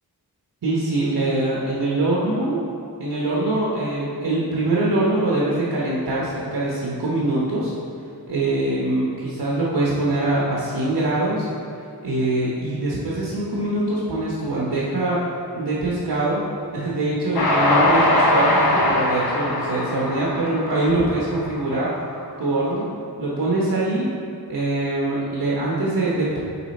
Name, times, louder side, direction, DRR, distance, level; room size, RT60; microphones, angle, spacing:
voice 1, 0.6-2.6 3.0-7.7 8.3-11.5 12.0-15.2 15.6-16.4 16.7-21.9 22.4-22.9 23.2-24.1 24.5-26.4, right 2 dB, 80° right, -6 dB, 1.0 m, -23 dB
Train, 17.3-21.7, left 1 dB, 70° left, 1.0 m, -20 dB
7.2 x 4.2 x 4.2 m, 2.4 s
wide cardioid pair, 85°, 38 cm